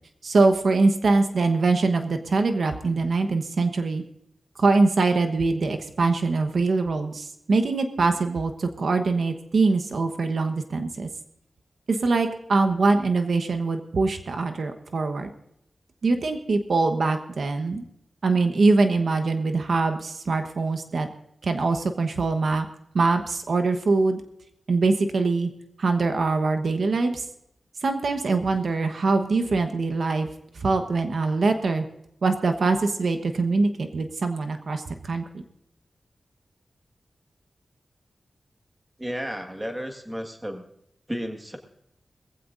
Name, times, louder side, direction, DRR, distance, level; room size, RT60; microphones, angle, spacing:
voice 1, 0.2-4.0 4.6-11.1 11.9-15.3 16.0-17.8 18.2-21.1 21.4-22.7 22.9-24.2 24.7-25.5 25.8-27.3 27.8-30.3 30.5-31.8 32.2-35.2, right 3 dB, 70° right, 6 dB, 1.1 m, -23 dB
voice 2, 39.0-40.6 41.1-41.6, equal, 10° right, 4 dB, 1.7 m, -32 dB
21.0 x 15.5 x 2.6 m, 0.75 s
wide cardioid pair, 135°, 0 cm